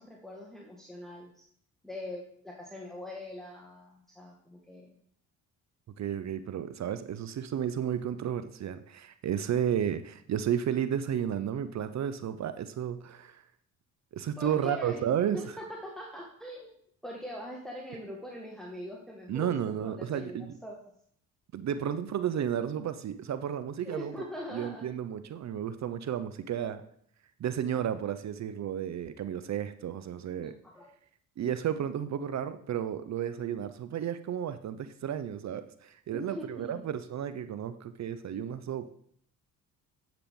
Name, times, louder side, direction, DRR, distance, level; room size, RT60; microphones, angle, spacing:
voice 1, 0.0-1.4 1.8-4.9 14.4-16.8 17.0-20.8 23.8-24.9 30.4-30.9 36.1-36.8, equal, ahead, -1 dB, 1.6 m, -42 dB
voice 2, 6.0-13.4 14.1-15.4 19.3-20.5 21.5-24.1 24.5-26.8 27.4-30.5 31.4-38.9, right 9 dB, 45° right, 12 dB, 0.6 m, -32 dB
9.9 x 5.9 x 3.7 m, 0.64 s
hypercardioid pair, 50°, 39 cm